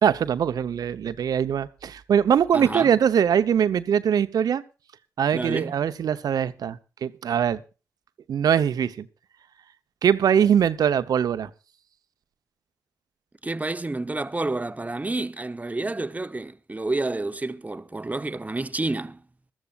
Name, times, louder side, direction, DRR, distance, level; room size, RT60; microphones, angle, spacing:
voice 1, 0.0-4.6 5.2-7.6 8.3-9.1 10.0-11.5, right 8 dB, 65° right, 0.8 m, -22 dB
voice 2, 2.5-2.9 5.3-5.7 13.4-19.2, right 2 dB, 20° right, 0.9 m, -29 dB
21.5 x 13.0 x 2.5 m
hypercardioid pair, 40°, 7 cm